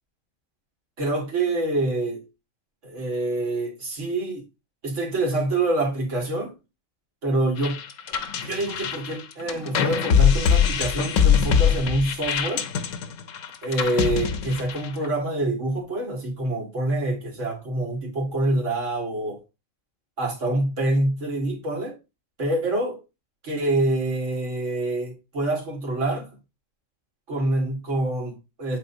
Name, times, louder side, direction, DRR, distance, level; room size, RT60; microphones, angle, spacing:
voice 1, 1.0-2.2 2.8-4.4 4.8-6.5 7.2-7.8 8.4-12.7 13.6-19.4 20.2-22.0 22.4-23.0 23.4-26.3 27.3-28.8, right 2 dB, 65° right, 2.4 m, -26 dB
sound 1, 7.6-15.1, left 7 dB, 75° left, 1.1 m, -23 dB
8.4 x 4.2 x 2.7 m
omnidirectional pair, 1.4 m